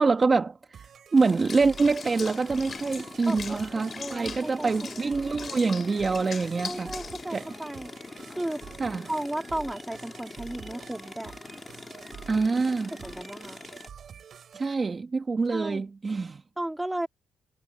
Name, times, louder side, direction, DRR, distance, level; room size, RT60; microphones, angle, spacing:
voice 1, 0.0-6.9 7.3-7.4 8.8-9.1 12.3-12.9 14.5-16.4, right 4 dB, 30° right, 1.4 m, -25 dB
sound 1, 0.7-14.7, right 7 dB, 55° right, 3.3 m, -47 dB
sound 2, 1.2-13.9, left 3 dB, 25° left, 3.4 m, -44 dB
Water / Bathtub (filling or washing), 1.5-7.3, left 6 dB, 45° left, 2.8 m, -41 dB
voice 2, 3.3-5.4 6.7-7.9 8.3-8.6 9.1-11.3 13.0-13.6 15.5-15.8 16.6-17.1, right 1 dB, 10° right, 2.9 m, -35 dB
cardioid pair, 90°, 0 cm